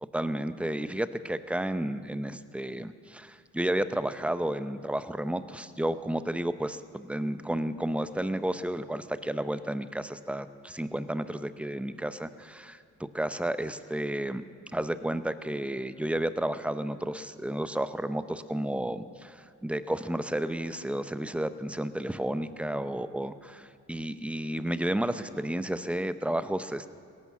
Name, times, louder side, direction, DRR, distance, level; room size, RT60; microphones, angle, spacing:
voice 1, 0.1-14.4 14.7-26.9, right 1 dB, 5° right, 12 dB, 0.6 m, -32 dB
17.5 x 11.0 x 7.3 m, 2.3 s
cardioid pair, 90°, 30 cm